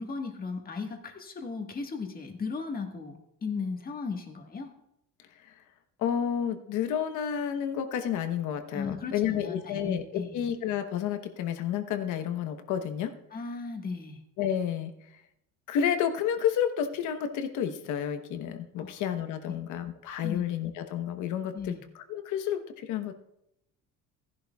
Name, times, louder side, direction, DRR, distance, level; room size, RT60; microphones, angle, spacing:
voice 1, 0.0-4.7 8.7-10.5 13.3-14.2 18.8-18.9 19.5-19.6 20.2-20.4 21.5-21.8, left 4 dB, 30° left, 3 dB, 1.5 m, -36 dB
voice 2, 6.0-13.1 14.4-14.9 15.7-23.2, left 9 dB, 70° left, 8 dB, 1.1 m, -30 dB
15.5 x 11.0 x 2.3 m, 0.80 s
cardioid pair, 120°, 32 cm